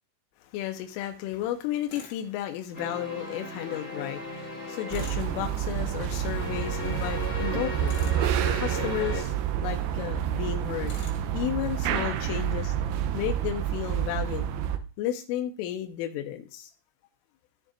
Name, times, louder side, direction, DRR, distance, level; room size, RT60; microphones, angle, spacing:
voice 1, 0.5-9.3 9.6-11.0 11.3-12.7 13.1-14.5 15.0-16.7, left 12 dB, 85° left, 4 dB, 3.3 m, -33 dB
Tools, 1.9-2.2 4.9-5.3 7.8-8.3 10.8-11.3, left 5 dB, 70° left, 4.6 m, -45 dB
sound 1, 2.7-9.2, left 2 dB, 15° left, 1.9 m, -37 dB
sound 2, 4.9-14.8, right 10 dB, 80° right, 2.9 m, -29 dB
14.5 x 6.3 x 2.5 m, 0.36 s
omnidirectional pair, 5.6 m